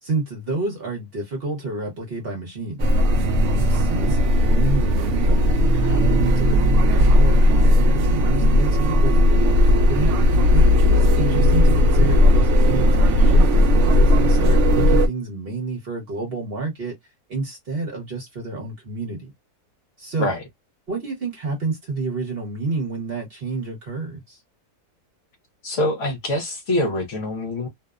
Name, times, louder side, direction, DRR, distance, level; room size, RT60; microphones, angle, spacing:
voice 1, 0.0-2.8 3.5-10.1 10.5-16.9 17.3-19.3 20.0-20.3 20.9-24.4, right 3 dB, 45° right, 0.9 m, -29 dB
sound 1, 2.8-15.1, left 1 dB, 70° right, 0.7 m, -16 dB
voice 2, 25.6-27.7, left 1 dB, 60° left, 1.0 m, -24 dB
2.7 x 2.0 x 2.3 m
omnidirectional pair, 1.6 m